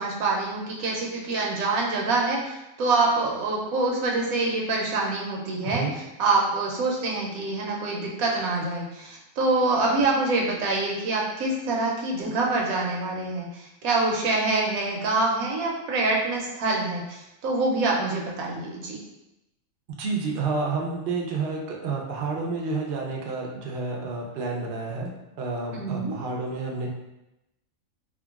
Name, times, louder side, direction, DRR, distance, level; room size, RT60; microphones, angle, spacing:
voice 1, 0.0-19.0 25.7-26.1, right 3 dB, 80° right, -2 dB, 1.1 m, -26 dB
voice 2, 5.6-5.9 19.9-25.1 25.4-26.9, right 4 dB, 60° right, -1 dB, 0.6 m, -30 dB
3.6 x 2.2 x 2.3 m, 0.94 s
omnidirectional pair, 1.5 m